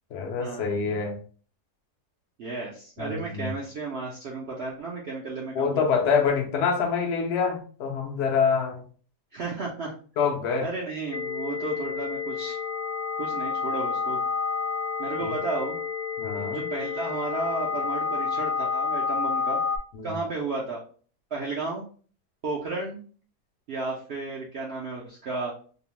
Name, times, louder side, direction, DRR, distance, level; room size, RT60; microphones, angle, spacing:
voice 1, 0.1-1.2 3.0-3.5 5.6-8.8 10.2-10.7 15.2-15.3 16.2-16.6 19.9-20.1, left 5 dB, 65° left, 2 dB, 0.7 m, -26 dB
voice 2, 2.4-6.1 9.3-9.9 10.6-12.6 13.2-14.2 15.0-15.8 16.5-19.6 20.0-20.8 21.3-21.8 22.4-23.0 23.7-25.5, right 3 dB, 70° right, -3 dB, 0.6 m, -33 dB
sound 1, 11.1-19.8, left 5 dB, 80° left, 1.1 m, -29 dB
2.8 x 2.0 x 3.0 m, 0.42 s
omnidirectional pair, 1.7 m